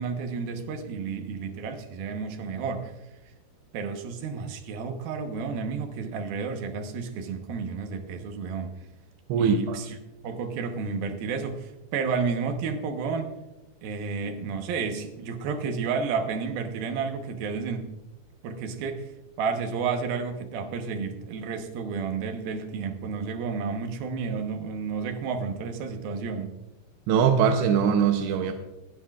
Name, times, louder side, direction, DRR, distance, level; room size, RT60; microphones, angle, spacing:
voice 1, 0.0-2.9 3.7-8.8 9.4-10.0 10.2-13.3 13.8-17.9 18.4-19.1 19.4-26.5, right 5 dB, 70° right, 5 dB, 2.8 m, -31 dB
voice 2, 9.3-9.8 27.1-28.5, right 7 dB, 90° right, 5 dB, 2.9 m, -22 dB
26.5 x 9.7 x 2.4 m, 1.0 s
omnidirectional pair, 4.7 m